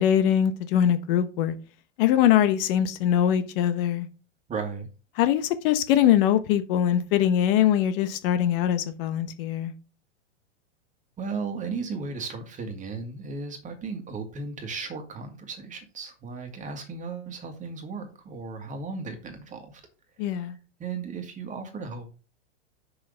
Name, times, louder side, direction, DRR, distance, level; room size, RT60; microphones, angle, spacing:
voice 1, 0.0-1.5 2.0-4.1 5.2-9.7 20.2-20.5, left 10 dB, 50° left, 1.0 m, -22 dB
voice 2, 4.5-4.9 11.2-19.8 20.4-22.1, right 4 dB, 20° right, 1.9 m, -35 dB
6.3 x 5.7 x 5.2 m
hypercardioid pair, 125°, 36 cm